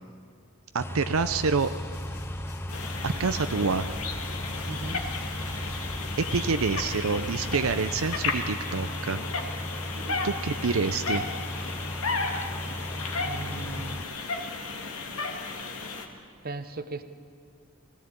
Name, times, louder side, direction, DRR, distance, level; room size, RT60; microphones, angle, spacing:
voice 1, 0.7-1.7 3.0-3.9 6.2-9.2 10.2-11.3, right 4 dB, 80° right, 9 dB, 0.7 m, -27 dB
sound 1, 0.8-14.0, equal, 10° left, 0.5 m, -36 dB
sound 2, 1.1-8.2, left 1 dB, 50° left, 3.4 m, -42 dB
sound 3, 2.7-16.1, left 4 dB, 85° left, 2.2 m, -34 dB
voice 2, 4.7-5.0 9.9-10.3 13.2-14.0 16.4-17.0, right 3 dB, 45° right, 10 dB, 1.0 m, -38 dB
22.0 x 17.0 x 8.7 m, 2.3 s
head